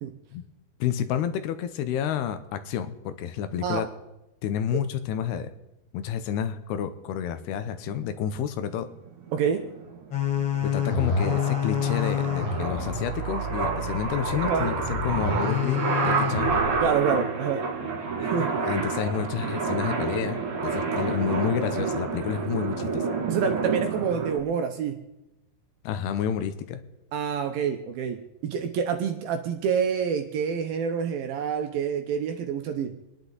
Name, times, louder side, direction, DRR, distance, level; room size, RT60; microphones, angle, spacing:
voice 1, 0.8-3.9 4.4-5.5 5.9-8.9 10.6-16.6 18.6-23.0 25.8-26.8, left 9 dB, 80° left, 10 dB, 2.7 m, -29 dB
sound 1, 9.1-24.4, right 4 dB, 50° right, 3.3 m, -29 dB
voice 2, 9.3-9.7 14.5-14.7 16.8-17.7 18.2-18.6 23.3-25.0 27.1-32.9, right 7 dB, 75° right, 6 dB, 2.3 m, -27 dB
sound 2, 10.1-16.9, left 5 dB, 50° left, 1.9 m, -28 dB
28.5 x 10.5 x 4.0 m, 0.94 s
omnidirectional pair, 5.0 m